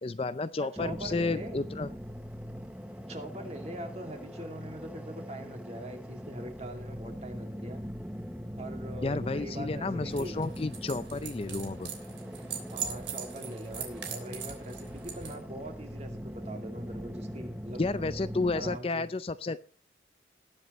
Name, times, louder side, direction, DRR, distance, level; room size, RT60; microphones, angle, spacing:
voice 1, 0.0-1.9 9.0-11.9 17.8-19.6, left 3 dB, 30° left, 13 dB, 0.4 m, -31 dB
voice 2, 0.6-1.6 3.1-7.8 8.5-10.4 12.7-17.8 18.5-19.1, right 1 dB, 35° right, 4 dB, 2.5 m, -42 dB
sound 1, 0.8-18.8, equal, 5° right, 0.9 m, -41 dB
sound 2, 10.1-15.3, right 8 dB, 80° right, 3.4 m, -41 dB
20.0 x 7.9 x 3.1 m, 0.39 s
head